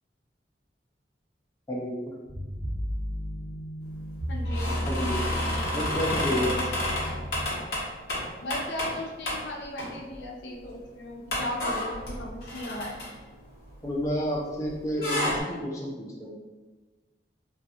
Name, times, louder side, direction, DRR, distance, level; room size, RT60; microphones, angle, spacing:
voice 1, 1.7-2.1 4.9-5.3 5.7-6.8 13.8-16.4, equal, 20° left, -3 dB, 0.3 m, -30 dB
sound 1, 2.3-7.4, equal, 30° right, 0.8 m, -33 dB
voice 2, 4.3-4.8 8.4-13.0, left 1 dB, 80° left, 0 dB, 0.5 m, -37 dB
sound 2, 4.4-9.0 9.3-9.4 9.8-10.3 10.6-10.7 11.3-14.3 14.6-15.4, left 1 dB, 60° left, 0.9 m, -31 dB
2.4 x 2.3 x 2.7 m, 1.2 s
head